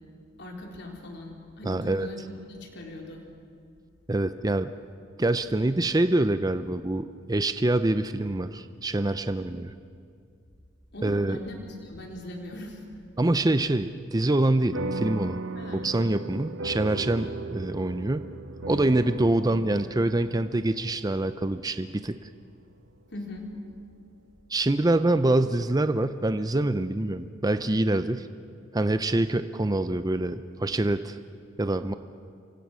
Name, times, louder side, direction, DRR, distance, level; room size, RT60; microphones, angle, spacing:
voice 1, 0.4-2.2 2.5-3.2 10.9-12.8 15.6-15.9 23.1-23.4, left 1 dB, 60° left, 0 dB, 4.3 m, -40 dB
voice 2, 1.7-2.1 4.1-4.7 5.2-9.7 11.0-11.4 13.2-15.4 15.7-18.3 18.7-22.2 24.5-28.3 28.7-31.2 31.6-31.9, right 2 dB, 20° right, 11 dB, 0.6 m, -25 dB
sound 1, 14.7-23.5, right 2 dB, 85° right, 1.0 m, -37 dB
28.5 x 24.5 x 6.3 m, 2.3 s
head